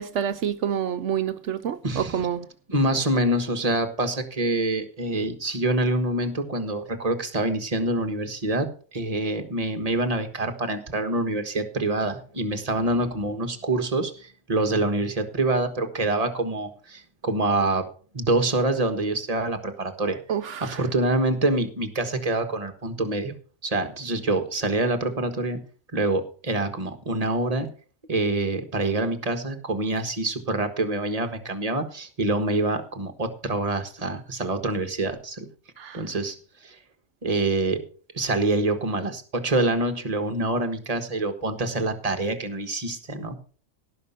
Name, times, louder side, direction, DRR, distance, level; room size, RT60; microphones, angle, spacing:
voice 1, 0.0-2.5 20.3-20.8 35.8-36.0, right 8 dB, 75° right, 1.1 m, -28 dB
voice 2, 1.8-2.3 2.7-17.9 18.1-20.2 20.6-23.3 23.6-25.6 25.9-27.7 28.1-35.5 35.9-36.4 36.6-36.8 37.2-37.8 38.1-43.3, right 2 dB, 30° right, 1.5 m, -26 dB
17.5 x 5.9 x 5.6 m
omnidirectional pair, 1.3 m